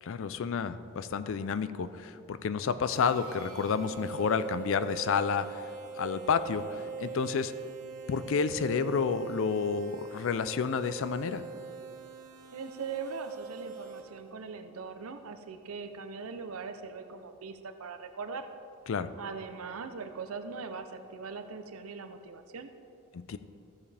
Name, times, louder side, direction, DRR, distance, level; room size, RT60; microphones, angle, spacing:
voice 1, 0.0-5.7 6.0-7.5 8.1-11.4 18.9-19.1 23.1-23.4, left 6 dB, 65° left, 13 dB, 0.4 m, -30 dB
sound 1, 2.9-14.3, right 4 dB, 40° right, 2.0 m, -42 dB
voice 2, 12.5-18.5 19.2-22.7, right 5 dB, 80° right, 8 dB, 0.7 m, -40 dB
14.0 x 7.2 x 3.4 m, 2.7 s
head